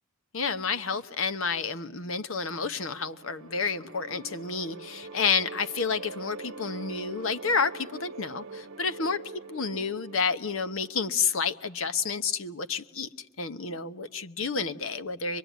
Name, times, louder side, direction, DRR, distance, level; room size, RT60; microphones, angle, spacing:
voice 1, 0.3-9.2 9.5-13.1 13.4-15.4, left 5 dB, 75° left, 12 dB, 1.0 m, -30 dB
sound 1, 2.6-11.6, right 3 dB, 80° right, 1.0 m, -44 dB
24.5 x 22.5 x 9.3 m, 0.91 s
head